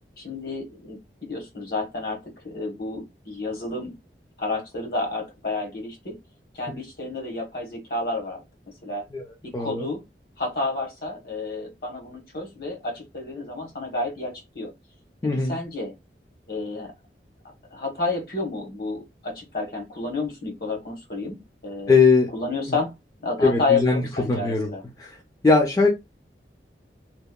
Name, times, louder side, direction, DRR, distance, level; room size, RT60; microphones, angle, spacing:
voice 1, 0.0-2.2 2.4-3.9 4.4-6.1 6.5-8.4 8.8-9.0 9.6-10.0 10.4-14.7 15.5-15.9 16.5-16.9 17.7-21.9 22.3-22.9 23.2-24.8, left 3 dB, 55° left, 1 dB, 1.0 m, -30 dB
voice 2, 9.5-9.9 15.2-15.6 21.9-22.3 22.7-22.8 23.4-24.7 25.0-25.2 25.4-25.9, left 4 dB, 20° left, 0 dB, 0.3 m, -20 dB
2.8 x 2.1 x 2.2 m, 0.21 s
head